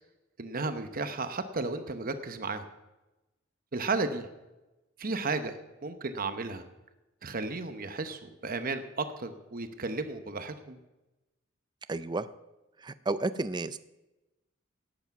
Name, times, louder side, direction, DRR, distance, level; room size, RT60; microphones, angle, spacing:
voice 1, 0.4-2.7 3.7-4.3 5.0-5.6 5.8-6.6 7.2-10.8, right 3 dB, 45° right, 9 dB, 0.9 m, -33 dB
voice 2, 11.9-12.3 12.8-13.8, right 2 dB, 20° right, 13 dB, 0.4 m, -31 dB
18.0 x 8.3 x 5.8 m, 1.0 s
head